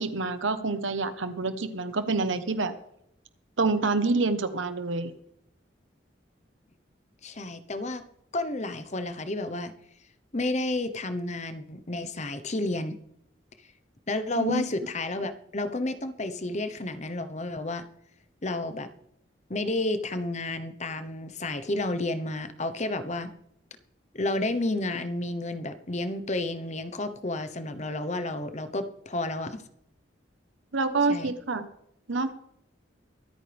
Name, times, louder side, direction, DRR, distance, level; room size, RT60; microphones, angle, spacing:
voice 1, 0.0-2.7 3.6-5.1 14.3-14.6 30.7-31.7 32.1-32.3, right 3 dB, 85° right, 11 dB, 1.1 m, -27 dB
voice 2, 7.2-8.0 8.3-9.7 10.3-13.0 14.1-17.8 18.4-18.9 19.5-23.3 24.1-29.6 31.1-31.3, left 2 dB, 35° left, 10 dB, 1.0 m, -31 dB
24.0 x 8.9 x 3.5 m, 0.74 s
head